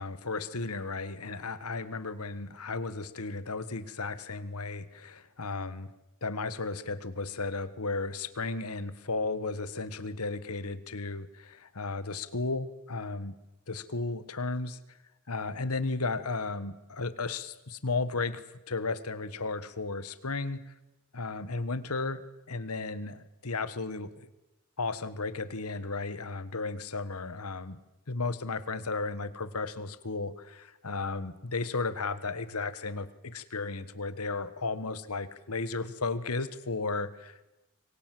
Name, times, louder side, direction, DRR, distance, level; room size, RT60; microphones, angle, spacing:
voice 1, 0.0-5.9 6.2-13.3 13.7-14.8 15.3-20.7 21.1-24.3 24.8-27.8 28.1-37.4, left 3 dB, 85° left, 14 dB, 1.5 m, -34 dB
26.0 x 22.0 x 7.8 m, 0.99 s
head